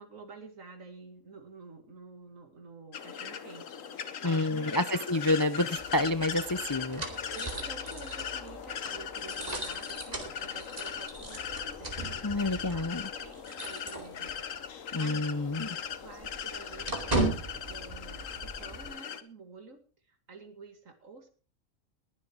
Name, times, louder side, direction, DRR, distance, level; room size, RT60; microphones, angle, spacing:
voice 1, 0.0-5.2 7.0-12.9 13.2-19.8 20.1-21.3, right 4 dB, 85° right, 6 dB, 2.7 m, -50 dB
sound 1, 2.9-19.2, left 7 dB, 80° left, 1.4 m, -39 dB
voice 2, 4.2-7.0 12.2-13.1 14.9-15.8, left 2 dB, 30° left, 12 dB, 0.3 m, -29 dB
sound 2, 5.8-14.6 14.9-15.1 15.4-18.9, right 2 dB, 30° right, 2.7 m, -38 dB
20.5 x 7.7 x 4.7 m, 0.37 s
omnidirectional pair, 1.3 m